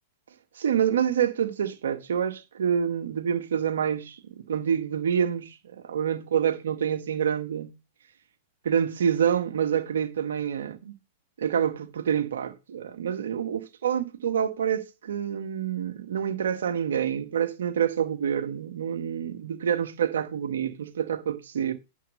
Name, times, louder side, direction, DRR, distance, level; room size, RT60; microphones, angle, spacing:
voice 1, 0.6-7.7 8.7-10.9 11.4-21.7, right 8 dB, 70° right, 1.6 m, -27 dB
9.4 x 4.0 x 6.6 m
hypercardioid pair, 100°, 0 cm